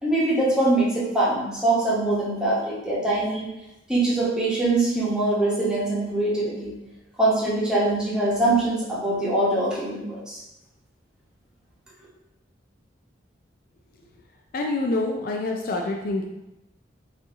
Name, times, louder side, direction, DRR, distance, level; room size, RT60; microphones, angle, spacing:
voice 1, 0.0-3.5 3.9-6.7 7.2-10.4, right 2 dB, 5° right, -8 dB, 1.0 m, -23 dB
voice 2, 14.5-16.3, left 2 dB, 50° left, 1 dB, 0.4 m, -26 dB
4.1 x 2.7 x 3.5 m, 0.93 s
head